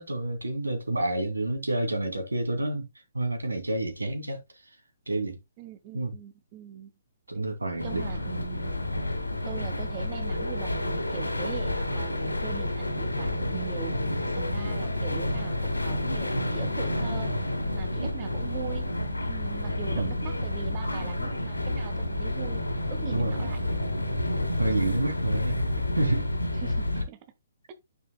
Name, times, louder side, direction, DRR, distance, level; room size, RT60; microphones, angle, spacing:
voice 1, 0.0-2.9 3.1-4.4 5.1-5.4 5.9-6.1 7.3-8.3 18.0-18.3 19.9-20.1 23.1-23.5 24.6-26.3, right 2 dB, 80° right, 2.6 m, -29 dB
voice 2, 5.6-6.9 7.8-8.7 9.4-13.9 14.4-17.3 17.7-18.9 19.3-22.6 22.9-23.8 26.5-27.2 27.7-27.8, right 9 dB, 30° right, 1.2 m, -41 dB
sound 1, 7.8-27.1, left 1 dB, 85° left, 2.1 m, -29 dB
9.3 x 7.0 x 2.3 m
figure-of-eight pair, 130°, 0 cm